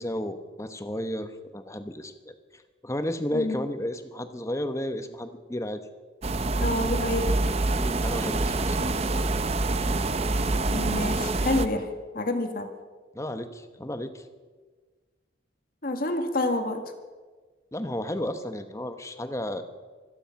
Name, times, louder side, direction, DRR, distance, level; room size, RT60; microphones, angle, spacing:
voice 1, 0.0-5.8 7.8-8.8 13.1-14.3 17.7-19.6, left 1 dB, 15° left, 9 dB, 1.0 m, -33 dB
sound 1, 6.2-11.7, right 2 dB, 35° right, 0.7 m, -26 dB
voice 2, 6.6-7.3 10.7-11.9 12.1-12.7 15.8-16.8, left 2 dB, 50° left, 6 dB, 1.8 m, -28 dB
24.5 x 10.0 x 5.8 m, 1.4 s
head